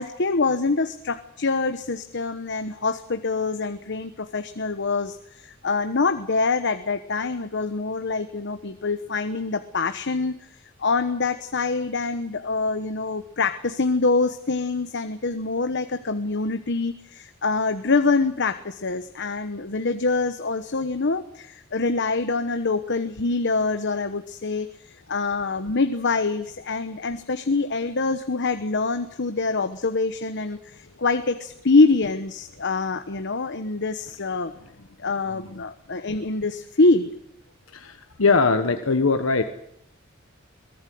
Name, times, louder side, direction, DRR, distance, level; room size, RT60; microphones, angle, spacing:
voice 1, 0.0-10.3 10.8-24.7 25.1-34.5 35.0-37.1, left 3 dB, 60° left, 9 dB, 1.1 m, -25 dB
voice 2, 35.3-35.6 37.7-39.4, left 4 dB, 80° left, 7 dB, 1.2 m, -22 dB
23.0 x 17.5 x 7.8 m, 0.76 s
head